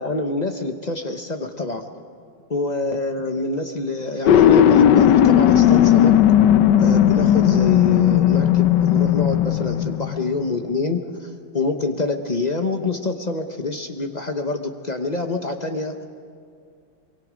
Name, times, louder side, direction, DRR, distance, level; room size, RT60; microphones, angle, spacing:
voice 1, 0.0-1.9 2.5-6.2 6.8-16.0, left 3 dB, 40° left, 5 dB, 0.6 m, -26 dB
sound 1, 4.3-10.4, left 10 dB, 70° left, 1.3 m, -15 dB
24.5 x 23.0 x 5.1 m, 2.3 s
omnidirectional pair, 2.1 m